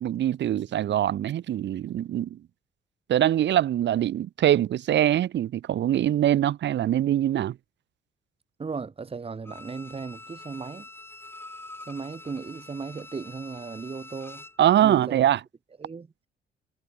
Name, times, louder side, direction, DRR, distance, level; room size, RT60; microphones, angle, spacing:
voice 1, 0.0-2.4 3.1-7.6 14.6-15.4, right 11 dB, 65° right, 1.0 m, -23 dB
voice 2, 8.6-10.9 11.9-14.4 14.8-15.2 15.8-16.1, right 5 dB, 30° right, 1.6 m, -36 dB
Bowed string instrument, 9.4-14.7 15.0-15.1, left 2 dB, 10° left, 1.8 m, -45 dB
cardioid pair, 90°, 20 cm